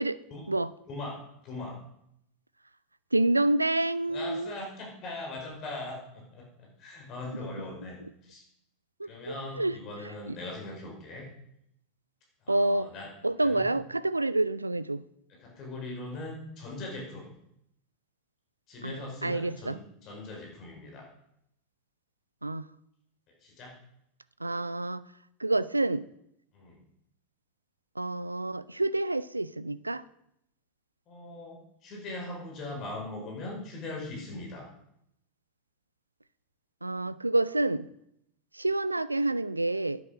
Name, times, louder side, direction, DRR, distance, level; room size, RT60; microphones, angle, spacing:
voice 1, 0.9-1.8 4.1-8.0 8.2-8.4 9.0-11.3 12.4-13.1 13.4-13.7 15.3-17.3 18.7-21.1 23.4-23.8 26.5-26.9 31.1-34.7, left 2 dB, 40° left, -1 dB, 5.5 m, -40 dB
voice 2, 3.1-4.6 9.0-9.7 12.5-12.9 13.2-15.0 18.8-19.8 22.4-22.7 24.4-25.0 25.4-26.1 28.0-30.0 36.8-37.9 38.5-40.0, right 2 dB, 85° right, 18 dB, 0.5 m, -28 dB
10.5 x 10.0 x 6.6 m, 0.77 s
figure-of-eight pair, 85°, 0 cm